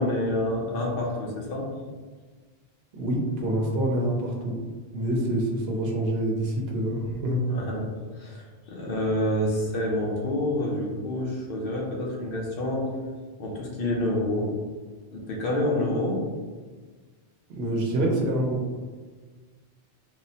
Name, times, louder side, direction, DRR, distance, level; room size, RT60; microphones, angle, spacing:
voice 1, 0.0-1.7 7.5-7.8 8.1-12.9 13.4-14.5 15.1-16.2, left 1 dB, 65° left, -2 dB, 0.9 m, -28 dB
voice 2, 2.9-4.6 4.9-7.4 17.5-18.8, right 1 dB, 75° right, 0 dB, 0.9 m, -26 dB
3.6 x 2.1 x 2.7 m, 1.4 s
omnidirectional pair, 1.0 m